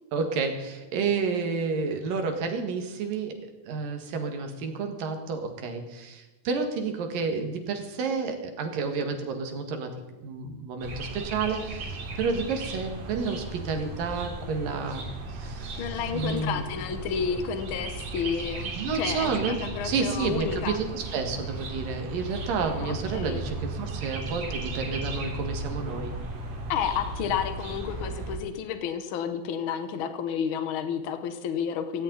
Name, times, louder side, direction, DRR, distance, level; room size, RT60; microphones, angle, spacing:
voice 1, 0.1-3.4 3.7-9.9 10.2-15.9 16.1-16.7 18.8-26.2, right 4 dB, 90° right, 5 dB, 3.5 m, -30 dB
sound 1, 10.8-28.4, right 2 dB, 70° right, 4.1 m, -36 dB
voice 2, 15.8-18.7 19.0-20.8 22.8-23.4 26.7-32.0, left 7 dB, 75° left, 8 dB, 1.2 m, -31 dB
16.5 x 16.0 x 4.0 m, 1.1 s
omnidirectional pair, 3.8 m